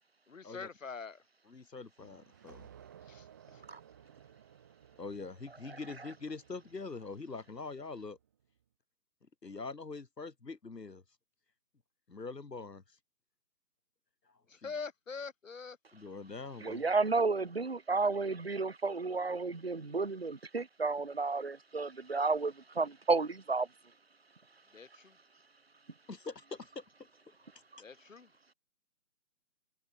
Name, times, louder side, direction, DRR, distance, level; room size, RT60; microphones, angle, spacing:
voice 1, 0.3-1.2 3.1-3.6 14.5-15.8 24.7-25.2 27.8-28.3, left 5 dB, 50° left, 1.9 m, -44 dB
voice 2, 1.5-2.7 5.0-8.2 9.4-11.0 12.1-13.0 14.3-14.7 15.9-16.8 26.1-26.8, left 4 dB, 75° left, 2.8 m, -44 dB
sound 1, 2.0-8.3, right 9 dB, 10° right, 1.5 m, -58 dB
voice 3, 16.6-23.7, right 3 dB, 40° right, 0.7 m, -32 dB
figure-of-eight pair, 160°, 49 cm